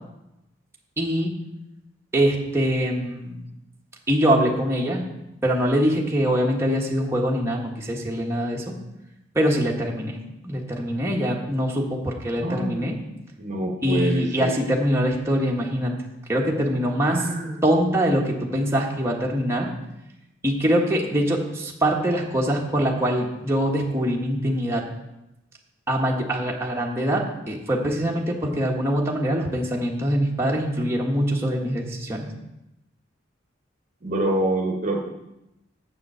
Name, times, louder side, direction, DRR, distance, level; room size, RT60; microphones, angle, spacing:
voice 1, 1.0-1.3 2.1-3.3 4.1-5.0 5.4-8.7 9.3-10.2 10.4-13.0 13.8-15.9 16.3-17.3 17.6-19.7 20.4-24.9 25.9-32.3, equal, 15° right, -2 dB, 1.3 m, -23 dB
voice 2, 12.4-12.9 13.4-14.6 17.0-17.6 34.0-35.1, right 1 dB, 40° right, 1 dB, 1.1 m, -26 dB
7.4 x 6.9 x 6.7 m, 0.91 s
head